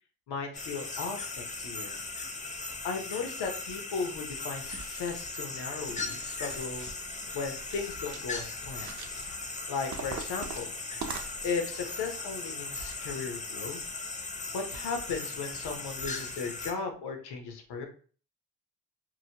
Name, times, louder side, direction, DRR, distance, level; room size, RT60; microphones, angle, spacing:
voice 1, 0.3-2.0 2.8-6.9 7.3-8.9 9.7-10.7 11.4-13.8 14.5-17.9, left 5 dB, 90° left, 4 dB, 0.8 m, -36 dB
sound 1, 0.5-16.7, left 3 dB, 20° left, 0.5 m, -38 dB
sound 2, 4.6-5.3 5.8-6.9 7.6-8.4 8.7-9.3 9.9-11.7, right 5 dB, 45° right, 0.6 m, -43 dB
2.9 x 2.1 x 2.8 m, 0.40 s
cardioid pair, 95°, 39 cm